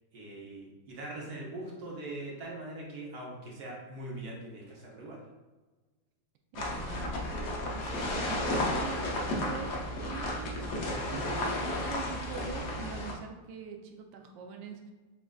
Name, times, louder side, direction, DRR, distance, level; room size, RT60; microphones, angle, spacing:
voice 1, 0.1-5.2, right 2 dB, 60° right, -3 dB, 1.3 m, -42 dB
sound 1, 6.5-13.1, left 1 dB, 60° left, 1.0 m, -33 dB
voice 2, 6.5-14.9, right 5 dB, 80° right, 3 dB, 1.2 m, -44 dB
7.2 x 2.4 x 2.3 m, 1.2 s
omnidirectional pair, 2.1 m